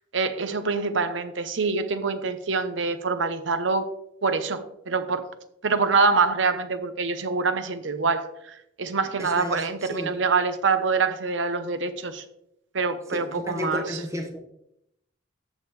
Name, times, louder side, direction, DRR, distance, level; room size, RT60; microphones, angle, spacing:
voice 1, 0.1-3.9 4.2-5.3 5.6-12.2 12.7-13.8, right 4 dB, 70° right, 0.8 m, -25 dB
voice 2, 9.2-10.2 13.1-14.4, left 1 dB, 15° right, 1.3 m, -33 dB
14.0 x 5.4 x 3.2 m
head